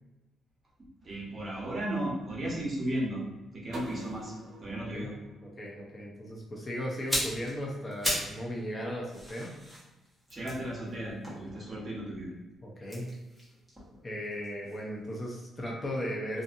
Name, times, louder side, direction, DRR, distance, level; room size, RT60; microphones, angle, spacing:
voice 1, 1.0-3.2 3.5-4.3 4.6-5.1 10.3-12.3, right 1 dB, 35° right, -5 dB, 1.1 m, -35 dB
sound 1, 3.7-6.5, equal, 65° right, 0.7 m, -46 dB
voice 2, 5.6-9.5 12.6-13.1 14.0-16.4, equal, 30° left, -2 dB, 0.6 m, -36 dB
sound 2, 6.9-8.4 8.7-12.0 12.8-14.8 15.1-15.3, equal, 5° left, 1.1 m, -37 dB
2.6 x 2.5 x 2.5 m, 1.1 s
cardioid pair, 90°, 0 cm